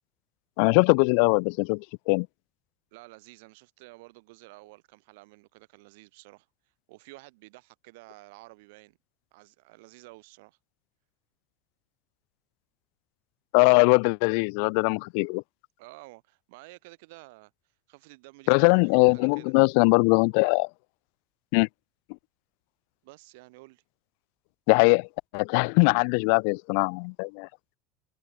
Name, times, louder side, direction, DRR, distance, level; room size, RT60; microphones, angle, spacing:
voice 1, 0.6-2.3 13.5-15.4 18.5-20.7 21.5-21.7 24.7-25.1 25.3-27.5, left 39 dB, 65° left, 0.6 m, -21 dB
voice 2, 2.9-6.5 6.9-9.0 9.3-10.6 15.8-17.5 17.9-19.5 23.0-23.8, right 24 dB, 70° right, 7.3 m, -51 dB
hypercardioid pair, 80°, 0 cm